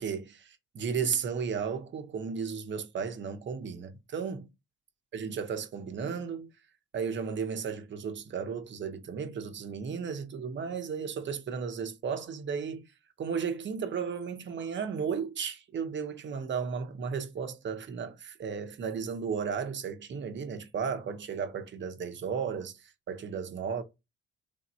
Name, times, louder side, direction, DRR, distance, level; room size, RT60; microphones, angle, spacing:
voice 1, 0.0-4.5 5.1-6.5 6.9-12.8 13.2-23.8, right 6 dB, 40° right, 0.7 m, -34 dB
3.3 x 2.7 x 4.3 m
cardioid pair, 120°, 30 cm